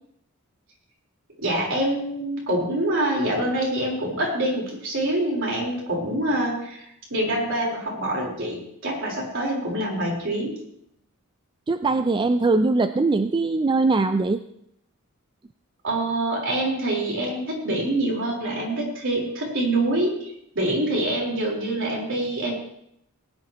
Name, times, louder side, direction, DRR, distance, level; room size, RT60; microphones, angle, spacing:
voice 1, 1.4-10.5 15.8-22.5, right 1 dB, 60° right, -2 dB, 4.2 m, -25 dB
voice 2, 11.7-14.4, right 3 dB, 20° right, 10 dB, 0.3 m, -21 dB
19.0 x 10.5 x 3.0 m, 0.74 s
head